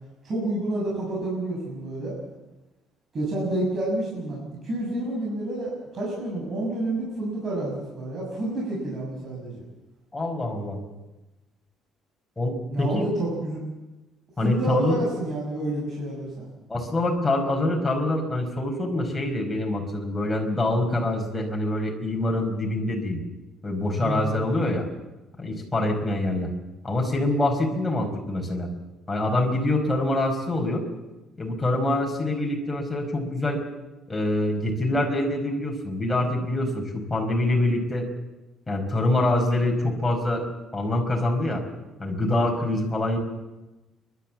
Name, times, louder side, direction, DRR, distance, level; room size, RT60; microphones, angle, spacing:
voice 1, 0.2-2.2 3.1-9.6 12.7-13.6 14.4-16.5 24.0-24.4, right 1 dB, 40° right, -3 dB, 6.7 m, -29 dB
voice 2, 10.1-10.8 12.4-13.1 14.4-15.0 16.7-23.2 23.6-24.9 25.4-26.5 26.8-28.7 29.1-30.9 31.4-33.6 34.1-38.1 38.7-40.4 40.7-41.6 42.0-43.2, left 1 dB, 15° left, 0 dB, 5.1 m, -25 dB
30.0 x 12.0 x 7.5 m, 1.1 s
cardioid pair, 120°, 0 cm